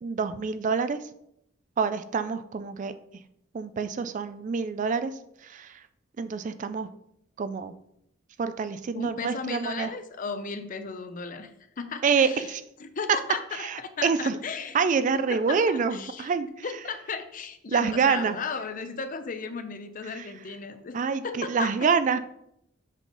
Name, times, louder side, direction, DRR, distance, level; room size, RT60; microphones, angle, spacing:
voice 1, 0.0-1.1 1.8-2.9 3.5-5.8 6.2-6.9 7.4-7.7 8.4-9.9 12.0-12.6 13.5-14.4 14.7-16.7 17.7-18.4 20.1-20.3 20.9-22.2, right 5 dB, 40° right, 12 dB, 0.3 m, -27 dB
voice 2, 8.9-11.5 11.8-12.4 12.8-14.7 15.3-16.3 16.6-21.0 21.2-21.9, left 5 dB, 45° left, 9 dB, 0.6 m, -35 dB
7.2 x 3.9 x 3.9 m, 0.77 s
head